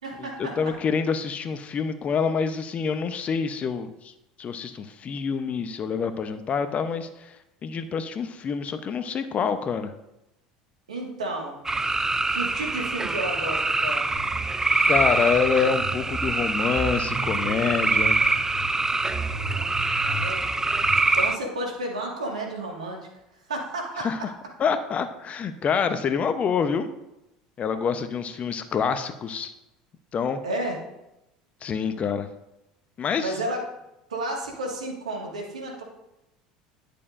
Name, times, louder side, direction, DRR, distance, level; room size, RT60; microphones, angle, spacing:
voice 1, 0.0-0.7 10.9-11.6 12.3-14.1 19.3-19.8 20.0-20.6 21.2-23.1 23.5-24.3 30.4-30.8 33.2-33.6 34.1-35.8, right 1 dB, 90° right, 0 dB, 1.8 m, -32 dB
voice 2, 0.6-4.1 4.4-7.4 7.6-9.9 14.9-18.2 24.0-24.2 24.6-26.9 27.6-29.5 30.1-30.4 31.6-32.3 33.0-33.3, left 6 dB, 40° left, 10 dB, 0.8 m, -26 dB
sound 1, 11.7-21.4, right 3 dB, 15° right, 0.5 m, -25 dB
sound 2, 14.1-21.0, right 3 dB, 50° right, 2.1 m, -36 dB
11.0 x 6.7 x 2.6 m, 0.90 s
hypercardioid pair, 75°, 4 cm